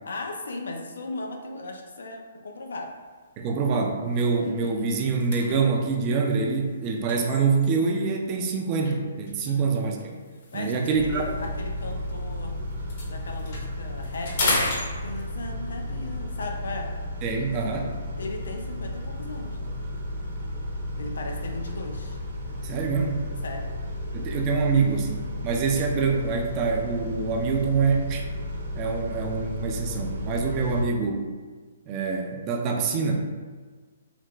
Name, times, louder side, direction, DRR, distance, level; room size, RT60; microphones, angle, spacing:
voice 1, 0.0-2.9 9.4-9.7 10.5-12.6 13.1-14.7 15.0-16.9 18.2-19.7 21.0-22.2 23.4-23.6, left 2 dB, 85° left, 3 dB, 0.5 m, -37 dB
sound 1, 2.9-3.1 3.6-3.7 4.0-8.0 8.8-12.4 12.7-15.5, left 2 dB, 40° left, 0.7 m, -34 dB
voice 2, 3.4-10.2 10.5-11.4 17.2-18.0 22.6-23.3 24.1-28.2 28.7-31.3 31.9-33.2, right 4 dB, 20° right, 2 dB, 0.3 m, -25 dB
Car / Idling / Accelerating revving vroom, 10.9-30.8, left 1 dB, 60° right, 0.8 m, -33 dB
3.3 x 2.4 x 3.0 m, 1.5 s
hypercardioid pair, 165°, 0 cm